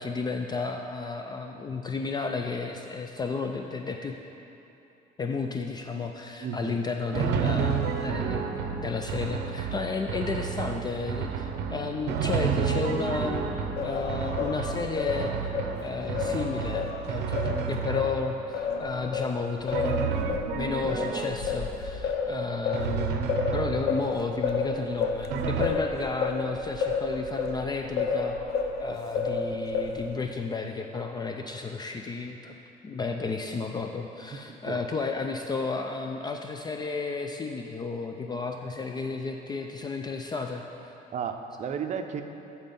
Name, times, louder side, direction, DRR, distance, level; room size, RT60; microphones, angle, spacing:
voice 1, 0.0-4.2 5.2-8.5 8.7-20.0 20.2-28.4 28.8-32.5 32.8-41.1, left 4 dB, 25° left, 4 dB, 0.3 m, -32 dB
voice 2, 6.4-6.7 25.5-25.7 28.9-29.0 34.5-34.8 41.1-42.2, right 7 dB, 45° right, 6 dB, 0.6 m, -34 dB
Drum, 7.1-18.5 19.7-21.7 22.7-24.2 25.3-25.7, right 6 dB, 85° right, 0.6 m, -31 dB
Singing, 13.8-18.1 18.5-28.8 29.2-30.2, left 4 dB, 75° left, 0.7 m, -31 dB
9.1 x 4.3 x 5.3 m, 3.0 s
cardioid pair, 110°, 17 cm